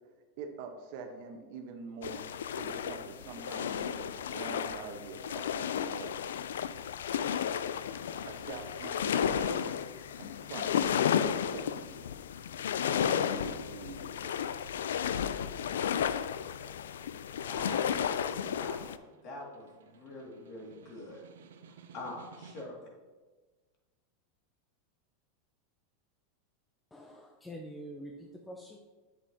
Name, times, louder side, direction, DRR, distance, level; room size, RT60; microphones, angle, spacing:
voice 1, 0.4-2.2 2.5-6.2 8.2-9.7 10.2-10.9 11.2-12.0 12.9-14.4, right 5 dB, 60° right, 5 dB, 1.0 m, -45 dB
sound 1, 2.0-19.0, left 8 dB, 85° left, 0.3 m, -33 dB
voice 2, 17.3-19.0 19.2-21.2 21.9-22.9, left 2 dB, 50° left, -1 dB, 2.1 m, -44 dB
Snare drum, 18.4-23.0, right 6 dB, 85° right, 0.6 m, -56 dB
voice 3, 26.9-28.8, equal, 10° left, 0 dB, 0.7 m, -46 dB
8.1 x 7.4 x 2.8 m, 1.3 s
hypercardioid pair, 115°, 0 cm